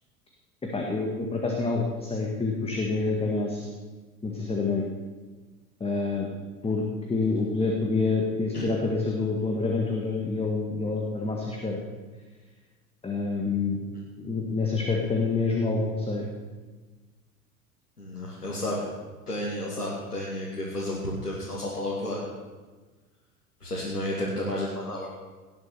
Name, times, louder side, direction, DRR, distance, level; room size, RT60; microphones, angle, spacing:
voice 1, 0.7-3.7 4.2-4.8 5.8-6.3 6.6-11.8 13.0-13.8 14.2-16.2, left 3 dB, 15° left, 0 dB, 1.8 m, -27 dB
voice 2, 18.0-18.8 19.3-22.2 23.6-25.1, left 1 dB, 80° left, -5 dB, 2.7 m, -31 dB
18.0 x 7.4 x 7.0 m, 1.3 s
figure-of-eight pair, 80°, 45 cm